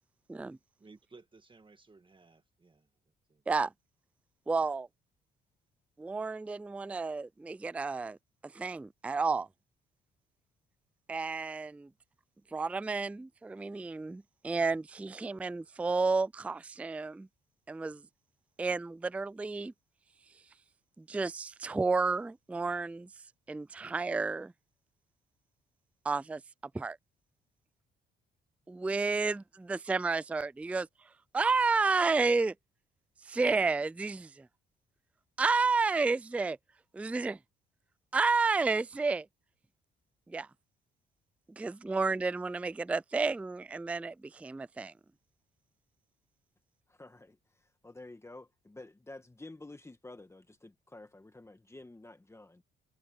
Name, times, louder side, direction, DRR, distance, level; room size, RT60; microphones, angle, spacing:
voice 1, 0.8-2.9 3.3-3.4, right 3 dB, 25° right, 1.9 m, -57 dB
voice 2, 4.5-4.9 6.0-8.2 8.5-9.5 11.1-11.9 12.5-17.3 17.7-18.0 18.6-19.7 21.0-23.1 23.5-24.5 26.0-26.4 26.7-27.0 28.7-30.9 31.3-32.5 33.3-34.5 35.4-36.6 36.9-37.4 38.1-39.3 40.3-40.5 41.6-44.9, right 4 dB, 5° right, 0.3 m, -31 dB
voice 3, 46.9-52.6, left 2 dB, 15° left, 1.5 m, -50 dB
cardioid pair, 90°, 20 cm